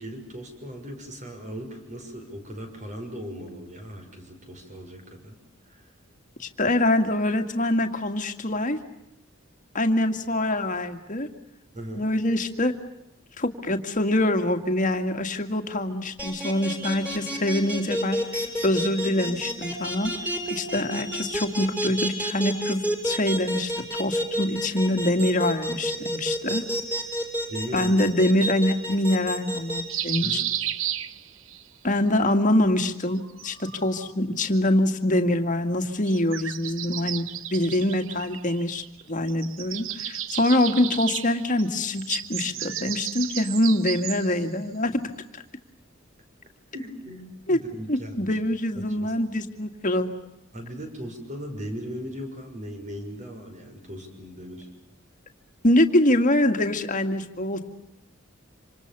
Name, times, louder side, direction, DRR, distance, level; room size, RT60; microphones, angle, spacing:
voice 1, 0.0-5.4 5.6-5.9 11.7-12.1 27.5-27.9 30.2-30.4 46.7-48.5 48.8-49.1 50.5-54.7, equal, 40° right, 5 dB, 6.3 m, -38 dB
voice 2, 6.4-8.8 9.7-11.3 12.0-12.7 13.4-18.2 18.6-20.1 20.5-26.6 27.7-30.4 31.8-37.2 37.5-39.9 40.3-45.1 47.5-47.6 47.9-50.1 55.6-57.7, left 1 dB, 40° left, 7 dB, 2.1 m, -24 dB
sound 1, 16.2-29.8, equal, 5° right, 6.7 m, -29 dB
sound 2, 29.9-31.6 33.0-34.1 36.0-39.0 39.3-44.5, right 12 dB, 70° right, 0.9 m, -33 dB
27.0 x 26.5 x 6.8 m, 0.88 s
head